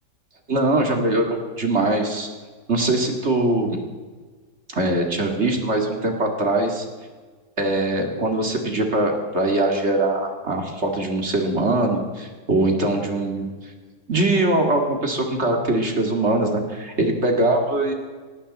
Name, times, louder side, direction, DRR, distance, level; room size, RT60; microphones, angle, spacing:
voice 1, 0.5-2.3 2.7-3.8 4.7-6.8 7.6-13.5 14.1-17.9, right 2 dB, 40° right, 3 dB, 2.5 m, -22 dB
19.0 x 17.0 x 4.3 m, 1.4 s
omnidirectional pair, 1.8 m